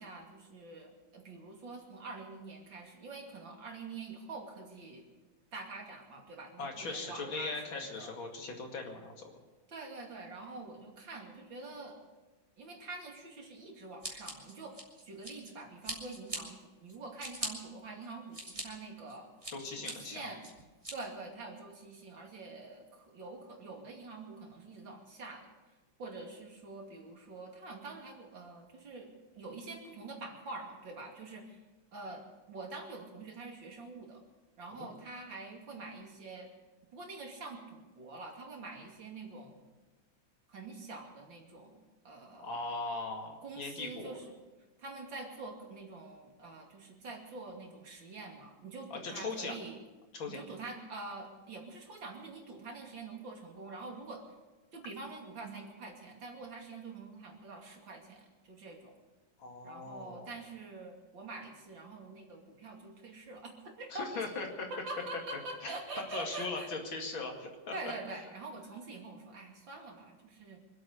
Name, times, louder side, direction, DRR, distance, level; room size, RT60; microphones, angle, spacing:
voice 1, 0.0-5.1 5.5-8.1 9.7-12.0 12.6-14.8 15.0-19.3 19.8-20.4 20.9-25.5 26.0-31.6 31.9-34.2 34.6-36.5 36.9-39.6 40.5-41.8 42.0-42.7 43.4-44.3 44.8-49.8 50.3-54.2 54.7-58.9 59.6-64.1 64.7-66.7 67.7-70.6, right 3 dB, 70° right, 0 dB, 3.3 m, -46 dB
voice 2, 6.6-9.3 19.5-20.3 34.7-34.9 42.3-44.1 48.9-49.6 50.1-50.4 59.4-60.3 63.9-64.7 65.6-65.7 66.1-67.7, left 3 dB, 85° left, 2 dB, 3.1 m, -39 dB
Scissors, 14.0-15.5 15.8-16.4 16.9-17.5 18.0-18.6 19.1-19.9 20.4-20.9, right 1 dB, 15° right, 2.8 m, -40 dB
25.0 x 8.6 x 6.7 m, 1.2 s
omnidirectional pair, 2.1 m